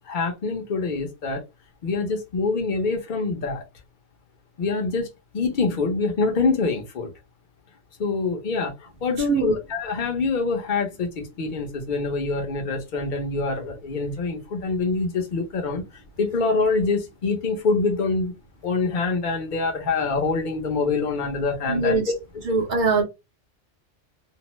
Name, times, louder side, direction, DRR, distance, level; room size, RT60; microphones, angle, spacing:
voice 1, 0.0-1.4 1.8-3.6 4.6-5.1 5.3-7.1 8.0-15.8 16.2-18.3 18.6-22.0, left 4 dB, 45° left, 0.8 m, -25 dB
voice 2, 9.2-9.6 21.7-22.1 22.4-23.0, right 3 dB, 50° right, 0.7 m, -22 dB
2.6 x 2.0 x 3.0 m
omnidirectional pair, 1.2 m